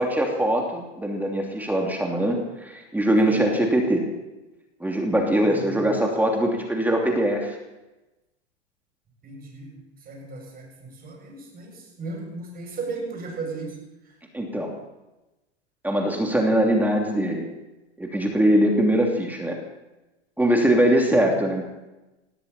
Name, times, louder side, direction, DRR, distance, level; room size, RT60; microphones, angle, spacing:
voice 1, 0.0-4.1 4.8-7.6 14.3-14.7 15.8-17.5 18.0-19.6 20.4-21.6, right 1 dB, 5° right, 1 dB, 2.9 m, -22 dB
voice 2, 3.2-3.5 5.3-6.1 9.2-14.2 20.9-21.4, right 3 dB, 25° right, 0 dB, 7.9 m, -37 dB
20.5 x 15.5 x 4.3 m, 1.0 s
hypercardioid pair, 110°, 34 cm